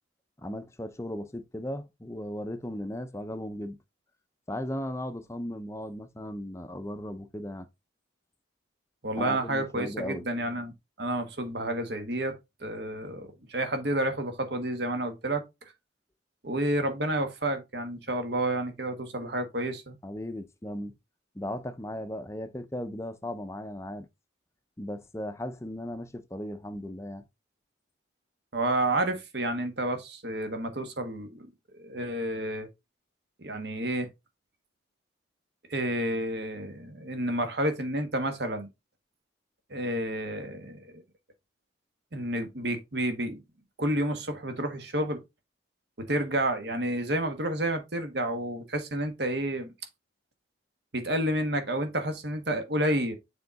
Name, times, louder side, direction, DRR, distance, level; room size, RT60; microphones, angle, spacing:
voice 1, 0.4-3.8 4.5-7.7 9.1-10.2 20.0-20.9 21.3-24.1 24.8-27.2, left 1 dB, 15° left, 0.6 m, -36 dB
voice 2, 9.0-10.7 11.0-12.3 12.6-15.4 16.4-20.0 28.5-31.5 31.8-32.7 33.4-34.1 35.7-38.7 39.7-41.0 42.1-43.4 43.8-45.2 46.0-49.7 50.9-53.1, right 1 dB, 55° right, 1.3 m, -30 dB
6.8 x 3.8 x 4.0 m
head